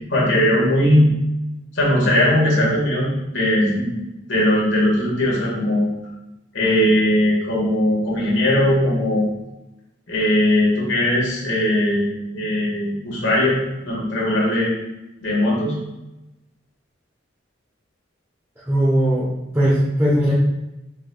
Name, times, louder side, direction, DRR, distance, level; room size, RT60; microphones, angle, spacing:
voice 1, 0.1-1.1 1.7-3.9 4.3-5.8 6.5-9.3 10.1-12.1 12.3-14.7 15.2-15.7, left 1 dB, 85° left, -4 dB, 1.4 m, -19 dB
voice 2, 18.7-20.3, equal, 10° right, -7 dB, 0.8 m, -19 dB
4.9 x 3.9 x 2.2 m, 0.95 s
head